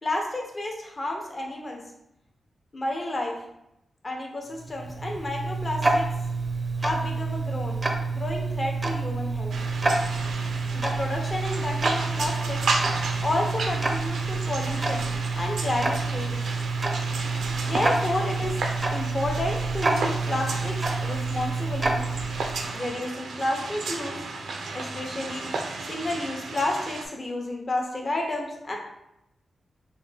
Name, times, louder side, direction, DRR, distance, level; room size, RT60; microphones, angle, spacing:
voice 1, 0.0-1.8 2.7-3.3 4.0-6.0 6.8-7.8 8.1-9.6 10.7-12.6 13.2-15.0 15.3-16.4 17.6-18.6 18.9-22.0 22.7-24.2 24.7-25.5 25.9-28.8, left 1 dB, 35° left, 0 dB, 0.7 m, -31 dB
Tick-tock, 4.5-22.8, right 3 dB, 30° right, 0.4 m, -28 dB
sound 1, 9.5-27.1, right 3 dB, 90° right, 0.4 m, -33 dB
3.8 x 2.2 x 3.3 m, 0.84 s
wide cardioid pair, 90°, 0 cm